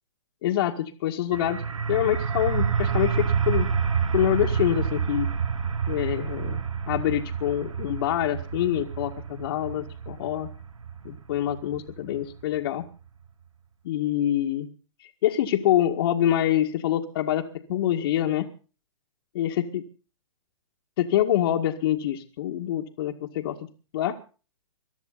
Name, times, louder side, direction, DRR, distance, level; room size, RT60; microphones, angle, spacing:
voice 1, 0.4-1.6 1.9-3.7 4.1-5.3 5.9-10.5 11.0-12.8 13.8-14.7 15.0-18.5 19.3-19.8 21.0-23.6 23.9-24.2, left 12 dB, 50° left, -1 dB, 2.0 m, -26 dB
sound 1, 1.3-12.8, right 6 dB, 85° right, 1.5 m, -28 dB
23.0 x 13.0 x 4.1 m, 0.36 s
hypercardioid pair, 130°, 16 cm